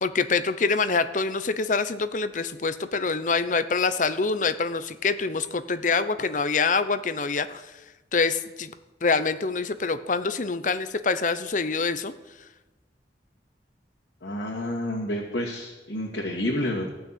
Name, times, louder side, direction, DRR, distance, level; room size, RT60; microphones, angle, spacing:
voice 1, 0.0-7.6 8.1-8.7 9.0-12.1, left 4 dB, 45° left, 12 dB, 0.7 m, -25 dB
voice 2, 14.2-16.9, left 1 dB, 90° left, -5 dB, 2.3 m, -29 dB
14.5 x 6.4 x 8.5 m, 1.1 s
head